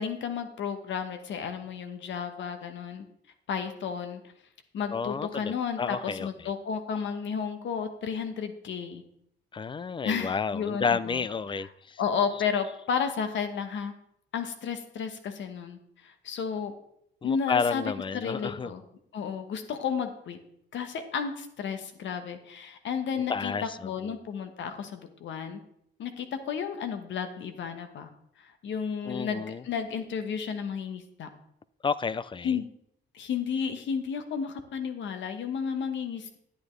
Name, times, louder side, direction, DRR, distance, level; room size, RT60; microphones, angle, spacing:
voice 1, 0.0-3.0 3.5-4.2 4.7-9.0 10.0-11.2 12.0-13.9 14.3-15.8 16.0-16.7 17.2-17.8 18.1-18.8 19.1-20.4 20.7-23.5 23.8-25.6 26.0-28.1 28.6-31.3 32.4-32.6 33.1-36.4, left 6 dB, 70° left, 8 dB, 1.2 m, -32 dB
voice 2, 4.9-6.5 9.5-12.0 17.2-18.7 23.1-24.1 29.0-29.6 31.8-32.6, left 5 dB, 25° left, 18 dB, 0.4 m, -31 dB
10.0 x 9.0 x 3.2 m, 0.73 s
cardioid pair, 90°, 20 cm